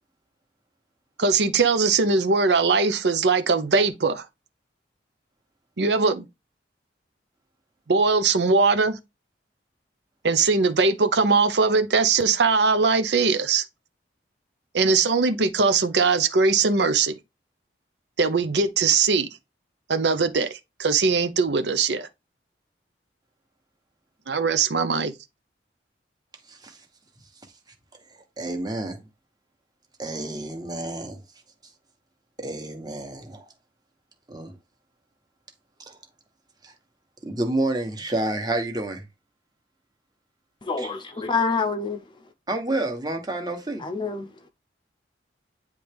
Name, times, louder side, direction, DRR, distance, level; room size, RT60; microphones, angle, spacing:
voice 1, 1.2-4.2 5.8-6.3 7.9-9.0 10.2-13.6 14.7-17.2 18.2-19.3 19.9-22.1 24.3-25.1, right 4 dB, 70° right, 0.7 m, -21 dB
voice 2, 28.4-29.0 30.0-31.2 32.4-33.4 34.3-34.6 35.9-36.0 36.6-36.7 37.2-39.0 40.8-40.9 42.5-43.9, right 2 dB, 20° right, 1.2 m, -29 dB
voice 3, 40.6-42.0 43.8-44.3, left 4 dB, 25° left, 0.6 m, -26 dB
9.4 x 3.3 x 3.5 m
head